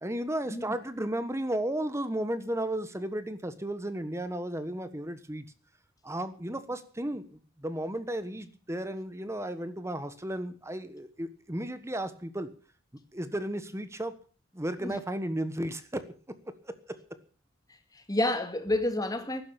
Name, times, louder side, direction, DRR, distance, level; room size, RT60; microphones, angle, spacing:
voice 1, 0.0-5.4 6.0-7.2 7.6-12.5 13.1-14.1 14.5-16.1, right 1 dB, 15° right, 1.3 m, -34 dB
voice 2, 17.9-19.4, left 1 dB, 20° left, 2.0 m, -29 dB
15.0 x 12.0 x 7.0 m
head